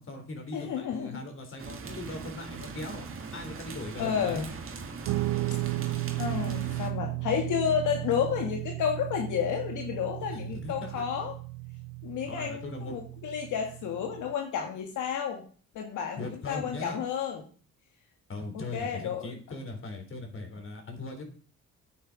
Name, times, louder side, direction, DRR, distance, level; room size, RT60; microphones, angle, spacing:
voice 1, 0.0-4.4 10.2-11.0 12.3-12.9 16.2-17.0 18.3-21.2, left 2 dB, 45° left, 4 dB, 4.1 m, -39 dB
voice 2, 0.5-1.2 4.0-4.6 5.5-5.6 6.2-11.3 12.0-15.4 15.7-17.4 18.7-19.3, left 8 dB, 80° left, 3 dB, 1.7 m, -31 dB
sound 1, 1.6-6.9, right 4 dB, 45° right, 2.0 m, -41 dB
Guitar, 5.0-14.3, right 20 dB, 85° right, 0.5 m, -35 dB
9.2 x 9.0 x 5.2 m, 0.42 s
cardioid pair, 90°, 30 cm